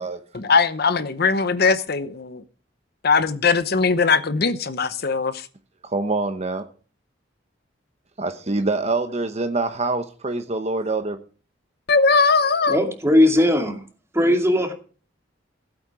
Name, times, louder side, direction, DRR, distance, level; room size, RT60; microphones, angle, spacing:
voice 1, 0.3-2.4 3.0-5.5 11.9-12.8, left 4 dB, 55° left, 0.9 m, -20 dB
voice 2, 5.8-6.7 8.2-11.2, right 3 dB, 35° right, 1.0 m, -25 dB
voice 3, 12.7-13.8 14.1-14.7, left 1 dB, 15° right, 2.5 m, -18 dB
16.0 x 8.7 x 4.9 m
head